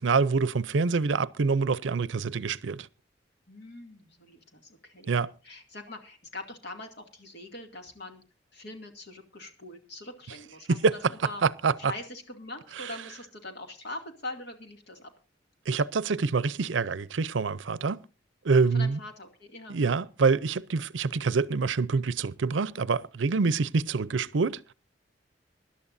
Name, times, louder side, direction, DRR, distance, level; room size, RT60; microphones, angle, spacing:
voice 1, 0.0-2.9 5.1-5.3 10.7-10.9 11.4-11.9 12.8-12.9 15.7-18.0 18.4-19.0 19.7-24.7, right 4 dB, 80° right, 0.5 m, -26 dB
voice 2, 3.5-5.2 5.4-8.2 8.5-11.4 11.8-15.1 18.7-19.8 23.3-23.5, left 2 dB, 65° left, 2.4 m, -43 dB
24.5 x 11.5 x 2.6 m
head